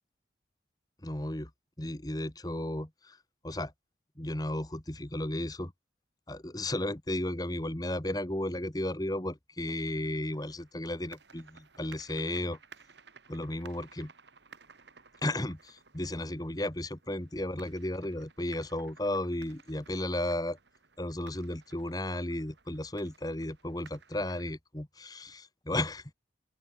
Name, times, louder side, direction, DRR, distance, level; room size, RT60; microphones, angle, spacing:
voice 1, 1.0-1.5 1.8-3.2 3.4-3.7 4.2-5.7 6.3-12.6 13.3-14.1 15.2-20.6 21.0-26.1, left 1 dB, 20° left, 1.5 m, -34 dB
sound 1, 9.8-24.5, right 5 dB, 75° right, 2.7 m, -58 dB
open air
head